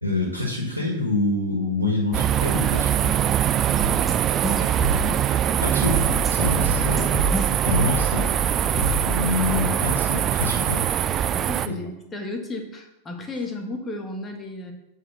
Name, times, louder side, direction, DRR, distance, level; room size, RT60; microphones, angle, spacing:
voice 1, 0.0-3.1 5.6-7.2 7.6-8.3 9.0-10.8 11.7-11.8, left 3 dB, 90° left, -3 dB, 1.8 m, -26 dB
sound 1, 2.1-11.7, right 10 dB, 30° right, 0.4 m, -23 dB
voice 2, 3.7-4.9 11.3-14.7, left 2 dB, 20° left, 4 dB, 1.5 m, -34 dB
sound 2, 4.1-4.2 4.4-5.1 5.5-9.0, right 2 dB, 10° right, 1.8 m, -27 dB
8.4 x 4.8 x 6.3 m, 0.90 s
figure-of-eight pair, 90°, 0 cm